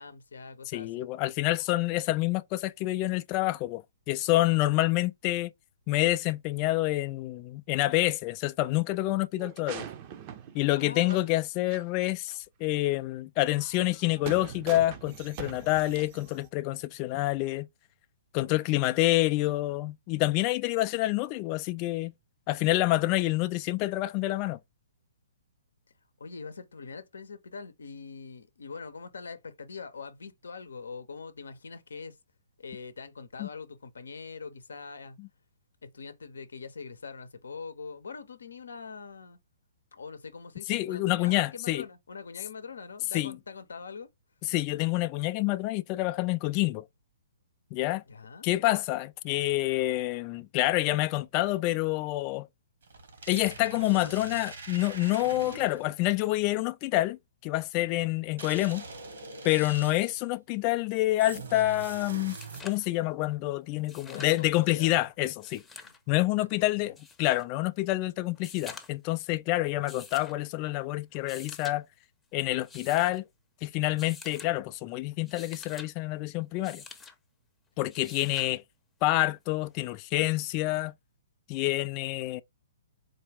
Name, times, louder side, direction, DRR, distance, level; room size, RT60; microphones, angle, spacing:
voice 1, 0.0-1.1 10.8-11.2 26.2-32.2 32.6-35.2 35.8-39.4 39.9-44.1 48.1-48.5 64.0-65.0 65.8-65.9 66.4-66.9, left 5 dB, 75° left, 0.7 m, -43 dB
voice 2, 0.7-3.8 4.1-5.5 5.9-9.9 10.5-17.7 18.3-22.1 22.5-24.6 33.4-33.5 40.7-41.8 43.1-43.3 44.5-46.8 47.7-48.0 48.4-52.5 53.3-58.8 59.4-62.4 62.6-65.6 66.1-66.9 67.2-71.8 72.3-73.2 73.6-76.8 77.8-78.6 79.0-80.9 81.5-82.4, left 17 dB, 35° left, 0.3 m, -27 dB
sound 1, 9.4-11.4 11.7-11.8 12.3-12.4 13.5-16.5, right 9 dB, 35° right, 0.6 m, -43 dB
sound 2, 52.8-56.0 58.4-60.2 61.2-62.9, right 3 dB, 65° right, 1.4 m, -43 dB
sound 3, 62.2-62.9 63.8-64.5 65.3-66.0 67.0-67.5 68.3-69.1 69.9-70.4 71.1-71.8 72.6-73.2 74.0-74.5 75.1-75.9 76.6-77.1 77.9-78.5 79.9-80.0, left 4 dB, 10° left, 0.7 m, -47 dB
4.0 x 2.3 x 3.4 m
figure-of-eight pair, 125°, 0 cm